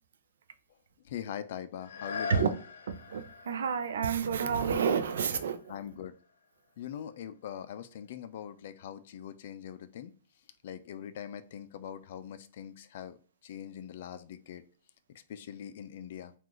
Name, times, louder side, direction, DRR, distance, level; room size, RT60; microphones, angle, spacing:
voice 1, 1.0-2.6 5.7-6.2 6.8-10.1 10.6-14.6 15.1-16.3, left 9 dB, 55° left, 0.4 m, -42 dB
sound 1, 1.8-7.4 8.0-8.1, left 5 dB, 85° left, 0.7 m, -44 dB
voice 2, 3.1-5.8, right 6 dB, 80° right, 0.5 m, -29 dB
3.8 x 2.4 x 3.0 m
hypercardioid pair, 160°, 0 cm